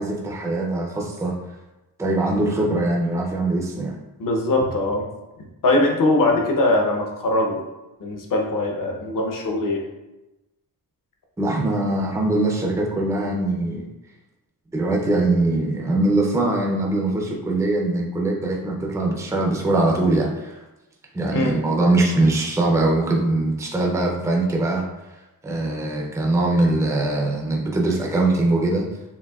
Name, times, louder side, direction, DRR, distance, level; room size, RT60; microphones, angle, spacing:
voice 1, 0.0-1.4 2.0-4.0 11.4-13.8 14.7-20.6 21.1-24.9 25.4-28.9, right 2 dB, 10° right, -1 dB, 0.5 m, -22 dB
voice 2, 4.2-5.1 5.6-7.6 8.0-9.8 21.3-21.6, left 2 dB, 55° left, 1 dB, 0.9 m, -21 dB
7.0 x 2.6 x 2.4 m, 1.0 s
wide cardioid pair, 145°, 38 cm